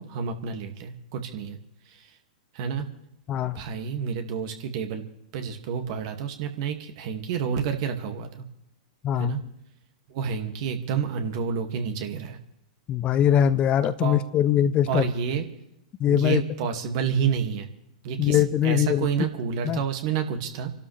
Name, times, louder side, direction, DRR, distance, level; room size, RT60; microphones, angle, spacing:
voice 1, 0.0-1.6 1.9-2.1 2.5-2.9 3.5-5.0 5.3-8.5 9.1-9.4 10.1-12.4 14.0-14.3 14.9-15.4 16.1-17.7 18.0-20.7, right 7 dB, 55° right, 5 dB, 2.2 m, -29 dB
voice 2, 3.3-3.6 9.0-9.4 12.9-15.1 16.0-16.4 18.2-19.1 19.6-19.8, left 10 dB, 30° left, 12 dB, 0.9 m, -22 dB
27.5 x 12.0 x 3.4 m, 0.83 s
hypercardioid pair, 105°, 4 cm